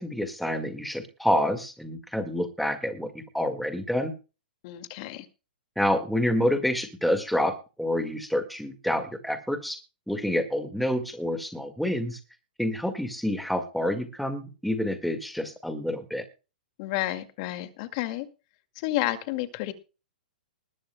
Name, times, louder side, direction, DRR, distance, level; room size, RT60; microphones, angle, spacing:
voice 1, 0.0-4.1 5.8-9.8 10.1-12.2 12.6-16.2, left 1 dB, ahead, 8 dB, 1.7 m, -28 dB
voice 2, 4.6-5.3 16.8-18.3 18.8-19.7, left 16 dB, 45° left, 9 dB, 2.0 m, -31 dB
20.5 x 13.0 x 2.2 m, 0.32 s
hypercardioid pair, 125°, 5 cm